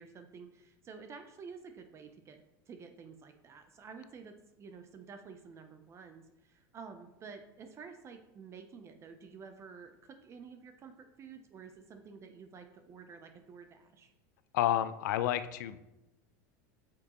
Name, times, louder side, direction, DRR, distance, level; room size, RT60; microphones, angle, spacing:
voice 1, 0.0-14.1, right 5 dB, 30° right, 7 dB, 0.7 m, -51 dB
voice 2, 14.5-15.8, left 12 dB, 80° left, 12 dB, 0.6 m, -30 dB
8.4 x 6.2 x 3.1 m, 0.95 s
supercardioid pair, 130°, 10 cm